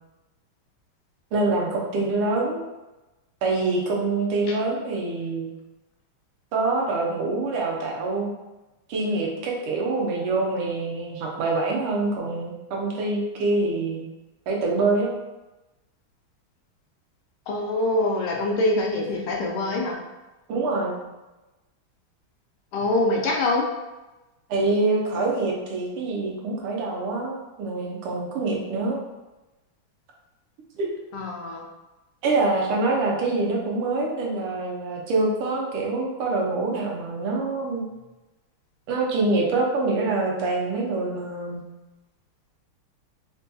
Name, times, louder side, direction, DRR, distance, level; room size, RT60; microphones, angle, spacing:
voice 1, 1.3-2.6 3.4-5.5 6.5-8.3 8.9-14.0 14.5-15.1 20.5-21.0 24.5-29.0 30.7-30.9 32.2-37.8 38.9-41.6, right 3 dB, 90° right, -2 dB, 1.7 m, -25 dB
voice 2, 17.5-19.9 22.7-23.7 31.1-31.6, left 2 dB, 85° left, 0 dB, 1.5 m, -24 dB
4.4 x 2.3 x 2.7 m, 1.0 s
omnidirectional pair, 2.3 m